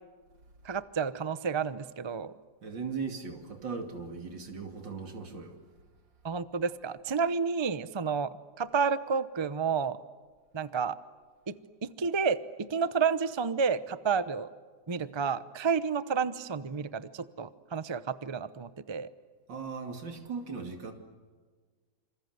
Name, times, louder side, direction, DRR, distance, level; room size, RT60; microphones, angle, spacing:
voice 1, 0.6-2.3 6.2-10.0 10.5-11.0 11.5-14.5 14.9-19.1, right 5 dB, 40° right, 14 dB, 0.3 m, -30 dB
voice 2, 2.6-5.6 19.5-20.9, right 5 dB, 80° right, 4 dB, 3.3 m, -38 dB
27.0 x 26.5 x 8.0 m, 1.5 s
omnidirectional pair, 2.0 m